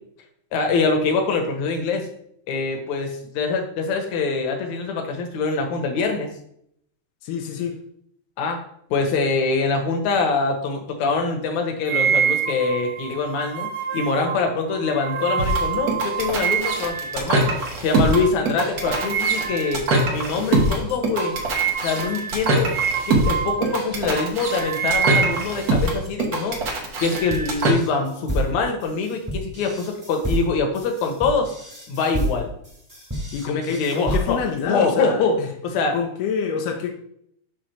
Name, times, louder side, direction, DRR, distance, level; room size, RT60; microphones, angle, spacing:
voice 1, 0.5-2.1 2.5-6.3 8.4-8.6 8.9-17.4 17.8-21.4 21.8-22.7 23.1-26.6 27.0-31.5 31.9-32.5 33.5-34.4 34.7-35.4 35.6-36.0, left 4 dB, 65° left, 2.3 m, -24 dB
voice 2, 7.2-7.8 33.3-35.2 35.9-36.9, left 6 dB, 85° left, 2.3 m, -27 dB
sound 1, 11.9-17.0 17.5-17.7 18.1-18.3 18.8-19.7 20.0-20.2 20.6-20.7 21.2-23.8 24.2-26.0, right 7 dB, 75° right, 1.5 m, -26 dB
sound 2, 15.4-27.7, right 2 dB, 60° right, 0.9 m, -23 dB
sound 3, 27.3-34.6, equal, 10° right, 1.0 m, -29 dB
6.4 x 3.7 x 6.1 m
omnidirectional pair, 3.6 m